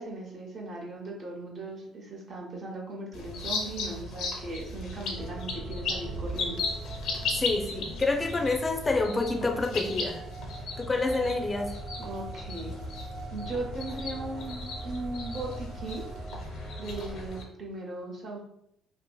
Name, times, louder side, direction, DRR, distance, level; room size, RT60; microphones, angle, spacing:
voice 1, 0.0-6.6 12.0-12.7 13.3-16.0 16.8-18.4, right 2 dB, 55° right, -1 dB, 0.8 m, -38 dB
sound 1, 3.1-17.4, left 3 dB, 75° left, 0.6 m, -37 dB
sound 2, 4.4-17.3, right 2 dB, 80° right, 0.5 m, -46 dB
sound 3, 5.1-17.4, right 1 dB, 20° right, 0.7 m, -43 dB
voice 2, 7.3-10.2 10.8-11.7, left 3 dB, 25° left, 2 dB, 0.4 m, -28 dB
2.6 x 2.5 x 2.2 m, 0.74 s
supercardioid pair, 75°, 0 cm